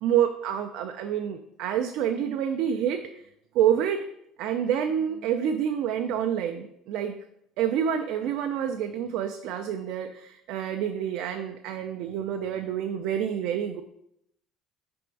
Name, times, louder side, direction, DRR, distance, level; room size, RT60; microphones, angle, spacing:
voice 1, 0.0-3.2 3.5-4.1 4.4-7.2 7.6-13.8, right 9 dB, 70° right, 6 dB, 0.4 m, -28 dB
6.0 x 3.4 x 4.6 m, 0.76 s
cardioid pair, 150°, 0 cm